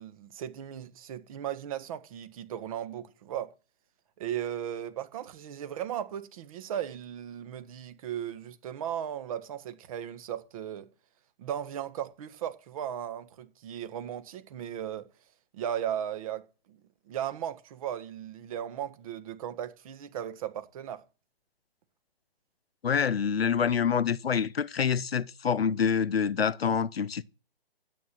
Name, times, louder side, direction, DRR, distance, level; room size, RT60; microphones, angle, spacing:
voice 1, 0.0-3.5 4.2-10.9 11.4-15.1 15.5-16.8 17.1-21.0, right 10 dB, 35° right, 1.6 m, -36 dB
voice 2, 22.8-27.2, left 7 dB, 75° left, 0.9 m, -26 dB
13.0 x 8.9 x 6.2 m
figure-of-eight pair, 140°, 31 cm